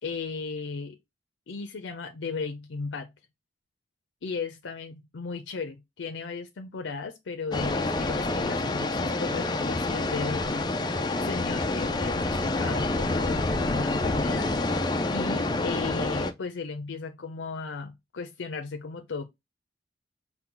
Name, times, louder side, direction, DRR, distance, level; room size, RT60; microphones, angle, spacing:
voice 1, 0.0-1.0 1.5-3.1 4.2-10.8 11.2-14.5 15.1-19.3, left 4 dB, 80° left, 0.5 m, -36 dB
sound 1, 7.5-16.3, left 2 dB, 25° left, 0.4 m, -27 dB
5.7 x 2.2 x 3.8 m
head